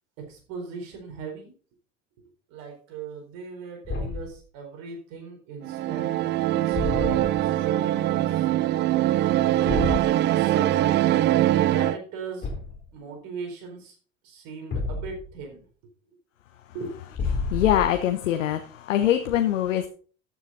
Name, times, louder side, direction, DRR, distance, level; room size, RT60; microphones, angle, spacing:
voice 1, 0.3-1.5 2.5-8.5 9.7-11.0 11.5-12.5 12.9-13.9 14.2-15.6 16.7-16.9, right 5 dB, 55° right, 4.4 m, -38 dB
Thump thud, 3.8-4.4 6.7-7.4 9.7-10.1 12.4-12.9 14.7-15.3 17.1-18.1, left 3 dB, 30° left, 3.6 m, -30 dB
sound 1, 5.6-12.0, right 14 dB, 30° right, 0.4 m, -22 dB
voice 2, 17.3-19.9, left 11 dB, 70° left, 1.0 m, -23 dB
13.5 x 7.4 x 4.2 m
figure-of-eight pair, 70°, 39 cm